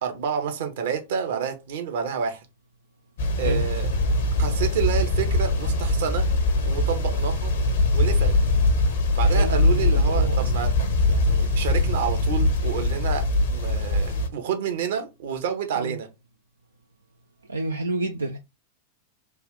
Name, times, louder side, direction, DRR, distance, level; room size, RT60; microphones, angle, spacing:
voice 1, 0.0-2.5 3.4-3.9 4.4-6.3 6.6-7.5 7.9-8.3 9.1-10.7 11.0-16.1, right 8 dB, 55° right, 0.8 m, -29 dB
sound 1, 3.2-14.3, left 2 dB, 60° left, 0.8 m, -22 dB
voice 2, 9.2-10.5 15.8-16.0 17.5-18.4, right 2 dB, 80° right, 0.3 m, -29 dB
3.3 x 2.3 x 3.6 m
figure-of-eight pair, 90°, 0 cm